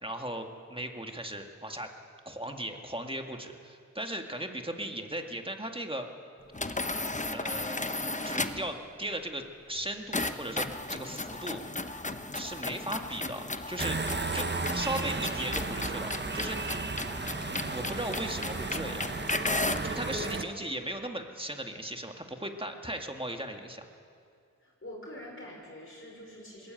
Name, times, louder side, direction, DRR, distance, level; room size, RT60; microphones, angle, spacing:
voice 1, 0.0-1.9 2.3-6.1 7.3-7.9 8.2-11.6 12.3-14.0 14.3-14.5 14.7-16.9 17.5-19.1 19.8-23.9, right 1 dB, 15° right, 4 dB, 1.9 m, -37 dB
sound 1, 6.5-8.7 10.1-19.9, left 2 dB, 20° left, 1.0 m, -35 dB
sound 2, 13.8-20.4, right 3 dB, 30° right, 1.0 m, -34 dB
voice 2, 19.8-20.4 24.6-26.7, left 1 dB, 40° left, -2 dB, 5.4 m, -44 dB
20.5 x 14.5 x 9.1 m, 2.4 s
cardioid pair, 45°, 33 cm